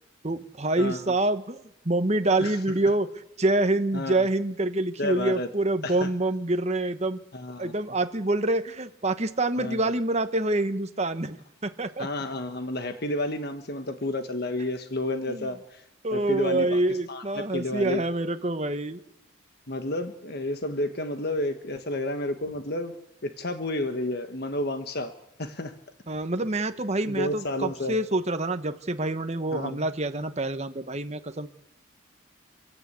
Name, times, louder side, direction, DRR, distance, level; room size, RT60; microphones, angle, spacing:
voice 1, 0.2-7.2 7.6-11.4 11.6-12.1 15.3-15.5 16.0-19.0 26.1-31.5, right 2 dB, 35° right, 9 dB, 1.3 m, -26 dB
voice 2, 5.0-5.5 5.8-6.1 7.3-7.7 9.6-9.8 12.0-15.8 16.1-18.0 19.7-22.9 23.2-25.1 25.4-25.7 27.1-27.9 29.5-29.8, left 1 dB, 50° left, 7 dB, 1.5 m, -31 dB
30.0 x 12.0 x 8.4 m, 0.82 s
head